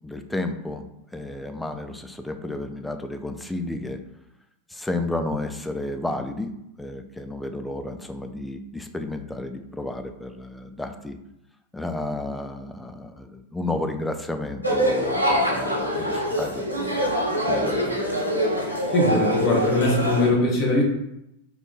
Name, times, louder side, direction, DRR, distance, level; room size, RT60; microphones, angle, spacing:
voice 1, 0.0-4.0 4.7-11.2 11.7-17.1 17.5-18.1, left 2 dB, 5° left, 7 dB, 0.3 m, -32 dB
sound 1, 14.6-20.3, equal, 90° left, 0.6 m, -24 dB
voice 2, 18.9-20.8, left 2 dB, 40° left, 0 dB, 0.7 m, -21 dB
2.7 x 2.5 x 3.7 m, 0.83 s
figure-of-eight pair, 90°, 0 cm